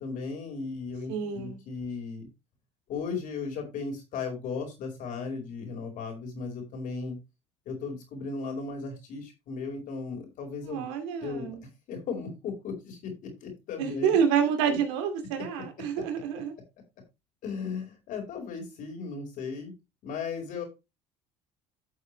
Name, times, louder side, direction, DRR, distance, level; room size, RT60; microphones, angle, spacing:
voice 1, 0.0-2.3 2.9-7.2 7.6-10.9 11.2-11.6 11.9-14.2 14.7-14.8 17.4-19.7 20.0-20.6, left 4 dB, 65° left, 2 dB, 4.7 m, -36 dB
voice 2, 1.1-1.6 10.6-11.6 13.8-16.5, right 7 dB, 85° right, 6 dB, 2.5 m, -28 dB
11.5 x 6.7 x 3.2 m, 0.25 s
supercardioid pair, 85°, 15 cm